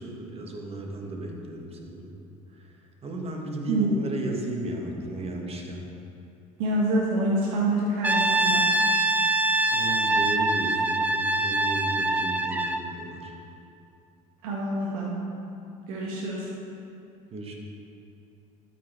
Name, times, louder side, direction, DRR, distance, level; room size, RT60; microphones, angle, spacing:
voice 1, 0.0-2.1 2.5-2.7 3.0-5.9 9.5-13.3 17.3-17.5, right 2 dB, 35° right, 1 dB, 1.5 m, -35 dB
voice 2, 6.6-8.6 14.4-15.2 15.9-16.5, right 1 dB, 75° right, -4 dB, 1.3 m, -26 dB
Brass instrument, 8.0-12.9, right 2 dB, 10° right, 0.5 m, -24 dB
13.0 x 5.8 x 3.2 m, 2.6 s
hypercardioid pair, 70°, 18 cm